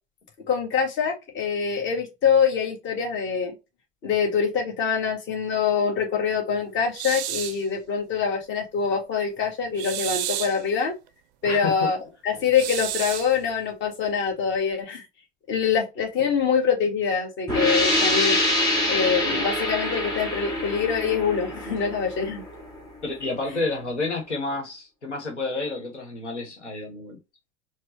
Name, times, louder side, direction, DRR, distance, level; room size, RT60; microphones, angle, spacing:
voice 1, 0.5-3.5 4.0-10.9 11.4-12.0 12.2-15.0 15.5-18.4 18.9-22.4 23.5-23.6, left 6 dB, 35° left, 1.4 m, -24 dB
sound 1, 7.0-7.6 9.8-10.6 12.5-13.3, right 13 dB, 40° right, 0.4 m, -31 dB
sound 2, 17.5-23.0, left 1 dB, 10° left, 2.2 m, -25 dB
voice 2, 23.0-27.2, left 3 dB, 80° left, 1.2 m, -30 dB
4.4 x 2.2 x 3.1 m
figure-of-eight pair, 80°, 35 cm